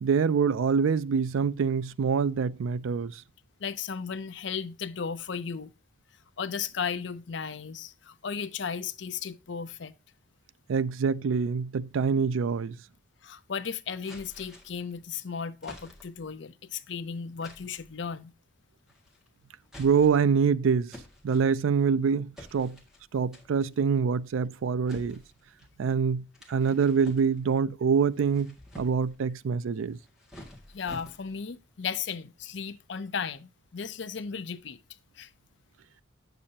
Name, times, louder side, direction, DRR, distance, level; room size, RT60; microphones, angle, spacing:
voice 1, 0.0-3.2 10.7-12.8 19.8-20.9 21.2-22.8 23.1-25.2 25.8-30.0, right 6 dB, 85° right, 0.4 m, -25 dB
voice 2, 3.6-5.7 6.4-9.9 13.2-18.3 30.7-34.8 35.2-35.3, left 6 dB, 65° left, 0.6 m, -35 dB
sound 1, 14.0-14.9 15.6-16.3 17.4-17.9 18.9-19.3 19.6-20.4 20.9-21.9 22.4-23.0 23.3-23.7 24.9-25.7 26.3-27.6 28.1-29.2 29.9-31.5, left 1 dB, 5° right, 1.8 m, -49 dB
8.6 x 6.8 x 2.8 m
head